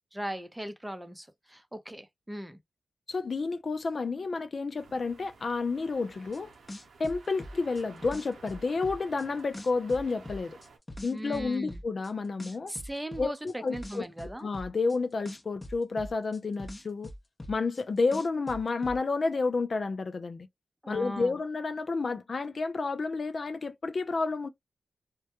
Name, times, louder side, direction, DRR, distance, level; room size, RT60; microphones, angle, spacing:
voice 1, 0.1-2.6 11.1-11.8 12.7-14.5 20.8-21.4, right 1 dB, 10° right, 0.6 m, -38 dB
voice 2, 3.1-6.5 7.0-10.6 11.0-12.7 13.2-14.0 14.4-17.1 17.5-20.5 20.9-24.5, left 4 dB, 60° left, 0.4 m, -30 dB
sound 1, 4.8-10.8, right 4 dB, 90° right, 0.6 m, -53 dB
sound 2, 6.3-6.4 6.7-9.2 9.5-12.1 12.4-15.0 15.2-17.8 18.1-19.0, left 1 dB, 30° left, 0.7 m, -42 dB
2.2 x 2.1 x 2.8 m
cardioid pair, 45°, 0 cm